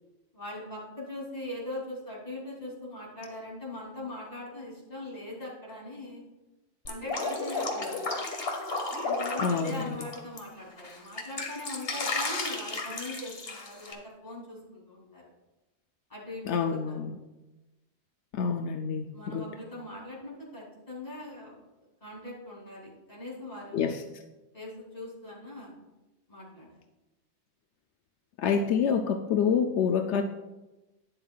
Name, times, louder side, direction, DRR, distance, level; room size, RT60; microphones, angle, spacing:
voice 1, 0.3-6.2 6.9-8.1 9.0-15.2 16.1-17.1 19.1-21.6 22.0-24.0 24.5-25.7 26.3-26.8, left 1 dB, 35° left, -5 dB, 3.1 m, -41 dB
Drip, 6.9-10.4 10.8-13.9, left 3 dB, 60° left, 1.6 m, -33 dB
voice 2, 9.4-10.0 16.4-17.2 18.3-19.5 23.7-24.0 28.4-30.2, left 6 dB, 85° left, 5 dB, 0.9 m, -27 dB
12.0 x 10.0 x 2.3 m, 1.1 s
omnidirectional pair, 1.1 m